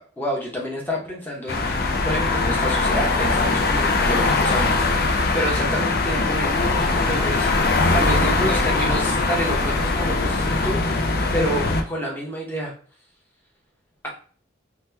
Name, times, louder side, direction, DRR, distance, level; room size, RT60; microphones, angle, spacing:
voice 1, 0.0-12.7 14.0-14.1, equal, 10° left, -2 dB, 0.8 m, -29 dB
sound 1, 1.5-11.8, left 3 dB, 50° left, 0.4 m, -21 dB
2.8 x 2.2 x 3.2 m, 0.43 s
head